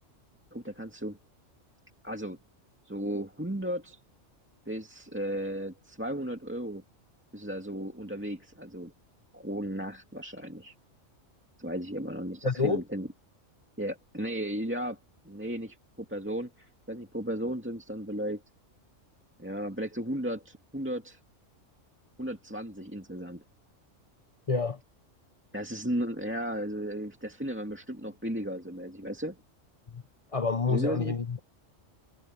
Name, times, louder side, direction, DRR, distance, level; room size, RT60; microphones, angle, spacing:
voice 1, 0.5-1.2 2.0-2.4 2.8-4.0 4.7-6.8 7.3-8.9 9.3-10.7 11.6-13.1 13.8-15.0 15.2-18.4 19.4-21.2 22.2-23.4 25.5-29.4 30.7-31.2, equal, 10° right, 2.1 m, -35 dB
voice 2, 12.4-12.8 24.5-24.8 29.9-30.0 30.3-31.4, left 4 dB, 30° left, 0.7 m, -28 dB
omnidirectional pair, 1.3 m